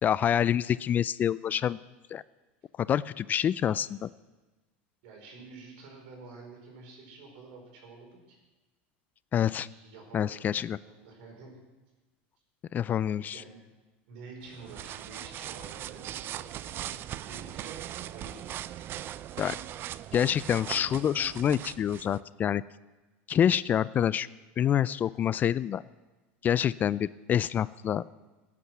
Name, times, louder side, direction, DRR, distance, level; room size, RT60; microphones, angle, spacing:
voice 1, 0.0-1.8 2.1-2.2 2.8-4.1 9.3-9.7 10.1-10.8 12.7-13.4 19.4-19.5 20.1-22.6 23.3-24.3 24.6-25.8 26.4-28.0, left 9 dB, 30° left, 18 dB, 0.3 m, -27 dB
voice 2, 5.0-8.4 9.7-11.6 13.1-13.6 14.1-18.6, right 3 dB, 70° right, 1 dB, 4.9 m, -49 dB
sound 1, 14.4-22.2, right 12 dB, 40° right, 0.4 m, -40 dB
17.0 x 8.4 x 6.0 m, 1.2 s
supercardioid pair, 120°, 6 cm